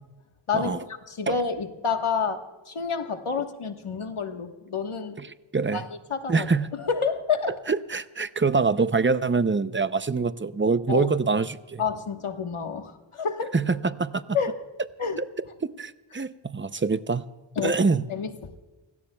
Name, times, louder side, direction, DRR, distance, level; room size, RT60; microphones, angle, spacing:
voice 1, 0.5-0.8 1.1-5.2 5.7-6.5 6.8-7.5 10.9-11.1 11.8-13.5 14.3-14.5 15.0-15.2 17.6-17.8 18.1-18.3, left 6 dB, 85° left, 6 dB, 1.4 m, -29 dB
voice 2, 5.2-5.9 6.3-6.8 7.5-11.8 13.5-14.2 15.6-17.2 17.6-18.0, right 4 dB, 25° right, 13 dB, 0.6 m, -25 dB
30.0 x 17.0 x 2.3 m, 1.2 s
wide cardioid pair, 70°, 49 cm